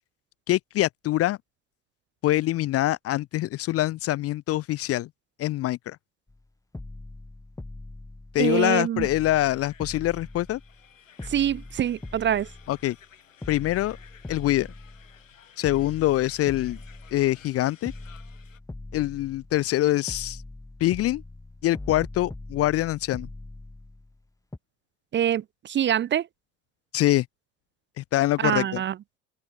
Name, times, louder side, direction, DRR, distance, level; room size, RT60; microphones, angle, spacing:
voice 1, 0.5-1.4 2.2-5.1 5.4-6.0 8.3-10.6 12.7-13.0 13.5-14.0 14.3-14.7 15.6-16.8 17.1-17.9 18.9-20.4 20.8-21.2 21.6-23.3 26.9-27.2 28.0-28.8, left 15 dB, 40° left, 0.5 m, -24 dB
sound 1, 6.3-6.4 6.7-8.7 9.0-10.9 11.2-13.0 13.4-15.3 15.6-17.5 17.8-19.8 20.1-24.2 24.5-24.6, left 2 dB, 10° left, 1.5 m, -41 dB
voice 2, 8.4-9.1 11.2-12.5 25.1-26.3 28.4-29.0, right 10 dB, 30° right, 0.5 m, -25 dB
sound 2, 9.4-18.6, left 8 dB, 90° left, 1.8 m, -54 dB
open air
hypercardioid pair, 60°, 38 cm